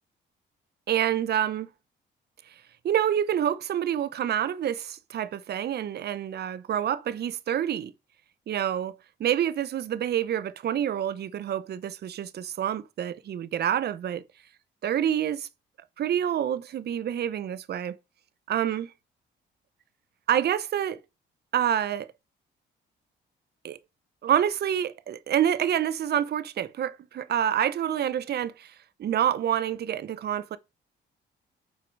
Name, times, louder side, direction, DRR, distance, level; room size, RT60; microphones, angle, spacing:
voice 1, 0.9-1.7 2.8-7.9 8.5-14.2 14.8-15.5 16.0-18.0 18.5-18.9 20.3-21.0 21.5-22.1 23.6-23.8 24.2-28.7 29.0-30.6, right 10 dB, 55° right, 0.7 m, -27 dB
6.1 x 4.6 x 5.4 m
cardioid pair, 90°, 20 cm